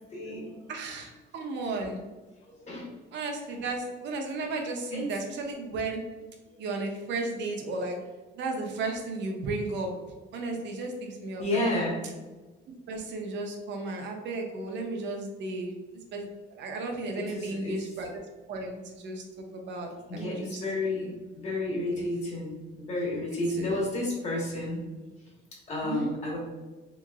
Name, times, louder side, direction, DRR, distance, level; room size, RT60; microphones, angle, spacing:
voice 1, 0.1-0.5 2.6-2.9 4.9-5.1 11.4-12.0 17.1-17.8 20.1-24.9 25.7-26.4, left 1 dB, 35° left, -3 dB, 1.3 m, -31 dB
voice 2, 0.7-2.0 3.1-6.0 6.6-8.0 8.3-9.9 10.3-11.9 12.9-15.7 16.1-18.2 18.5-20.6 21.9-22.1 23.5-23.7 25.8-26.1, right 3 dB, 65° right, 2 dB, 0.7 m, -34 dB
3.6 x 2.9 x 2.4 m, 1.2 s
cardioid pair, 140°, 19 cm